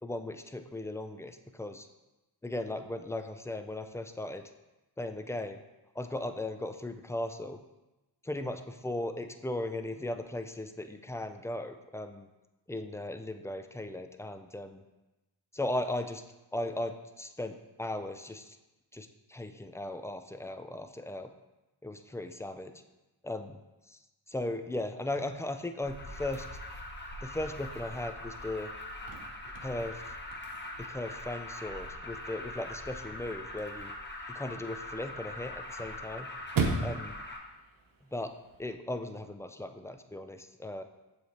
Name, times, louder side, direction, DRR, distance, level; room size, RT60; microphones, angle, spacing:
voice 1, 0.0-1.9 2.4-4.5 5.0-5.6 6.0-7.6 8.2-12.3 12.7-14.8 15.5-16.2 16.5-18.6 18.9-21.3 21.8-22.7 23.2-23.6 23.9-24.0 24.3-26.5 27.2-28.7 29.6-30.0 30.8-33.9 34.3-36.3 36.8-37.1 38.1-38.3 38.6-40.8, left 1 dB, 5° left, 8 dB, 0.4 m, -37 dB
Alarm, 25.8-37.4, left 1 dB, 25° left, 1.1 m, -42 dB
Chirp tweet / Car / Slam, 28.7-38.7, right 4 dB, 45° right, 1.0 m, -40 dB
6.9 x 3.3 x 4.5 m, 1.0 s
supercardioid pair, 50°, 46 cm